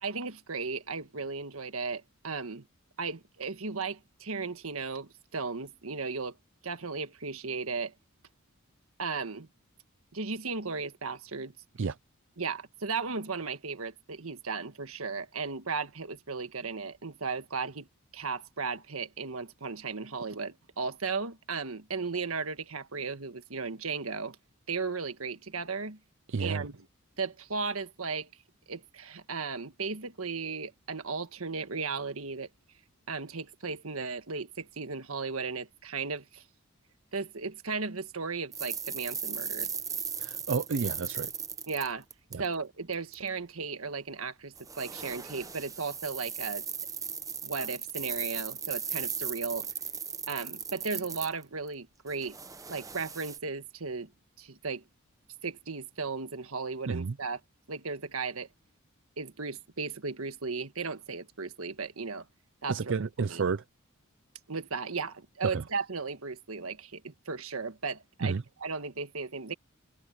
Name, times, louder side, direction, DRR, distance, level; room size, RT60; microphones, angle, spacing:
voice 1, 0.0-2.7 3.0-6.4 6.6-7.9 9.0-9.5 10.1-11.5 12.4-17.9 18.1-24.4 24.7-26.0 26.4-26.9 27.2-28.3 28.7-32.5 33.1-36.4 37.1-39.7 41.7-42.0 42.4-46.6 47.4-49.7 50.3-52.4 52.7-54.1 54.4-54.8 55.4-57.4 57.7-58.5 59.2-62.3 62.6-62.9 63.3-63.4 64.5-69.5, right 4 dB, 80° right, 1.6 m, -35 dB
voice 2, 26.3-26.7 40.2-41.3 42.3-42.4 56.9-57.1 62.7-63.6 65.5-65.6 68.2-68.4, right 5 dB, 60° right, 0.5 m, -31 dB
sound 1, 38.5-42.5 42.9-43.1 44.6-51.7 52.1-53.4, right 6 dB, 15° right, 0.9 m, -37 dB
head